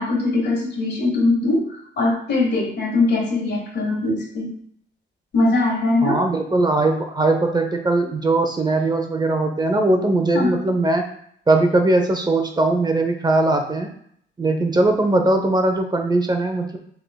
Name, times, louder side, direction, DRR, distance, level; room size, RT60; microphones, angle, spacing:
voice 1, 0.0-4.5 5.3-6.2 10.3-10.6, left 2 dB, 60° left, -1 dB, 1.7 m, -21 dB
voice 2, 6.0-11.0 11.5-13.9 14.4-16.8, right 2 dB, 20° right, 4 dB, 0.6 m, -20 dB
6.4 x 3.6 x 2.2 m, 0.66 s
cardioid pair, 90°, 20 cm